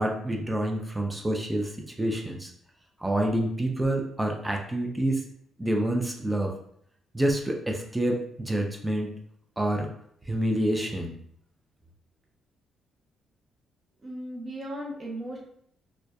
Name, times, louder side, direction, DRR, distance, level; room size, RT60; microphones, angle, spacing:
voice 1, 0.0-1.7 2.0-2.5 3.0-5.2 5.6-6.5 7.1-9.1 9.6-9.9 10.3-11.1, right 1 dB, 10° right, 1 dB, 0.4 m, -27 dB
voice 2, 14.0-15.4, right 1 dB, 35° right, -3 dB, 0.8 m, -36 dB
2.5 x 2.2 x 2.2 m, 0.67 s
cardioid pair, 90°, 0 cm